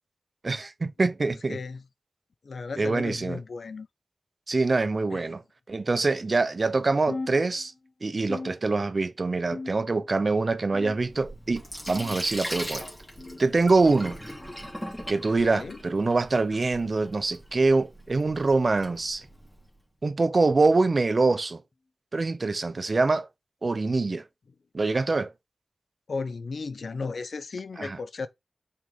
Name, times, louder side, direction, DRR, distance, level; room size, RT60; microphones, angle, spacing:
voice 1, 0.4-1.6 2.8-3.4 4.5-5.4 5.7-7.7 8.0-12.9 13.4-14.2 15.1-19.3 20.0-21.6 22.1-23.3 23.6-24.2 24.7-25.3 27.8-28.0, right 3 dB, 50° right, 0.7 m, -24 dB
voice 2, 1.2-1.8 2.4-3.9 5.1-5.3 15.4-15.8 26.1-28.3, left 4 dB, 90° left, 0.7 m, -35 dB
sound 1, 7.1-7.9 8.3-9.1 9.5-10.1 10.7-11.3 12.0-12.3 13.2-13.4 14.4-14.6 15.6-15.8 16.8-17.0 18.1-18.2 19.3-19.5 20.5-20.6 21.7-21.8, left 3 dB, 50° left, 0.9 m, -40 dB
Sink (filling or washing), 10.9-19.7, equal, 5° left, 2.3 m, -40 dB
5.9 x 4.8 x 3.7 m
wide cardioid pair, 95°, 0 cm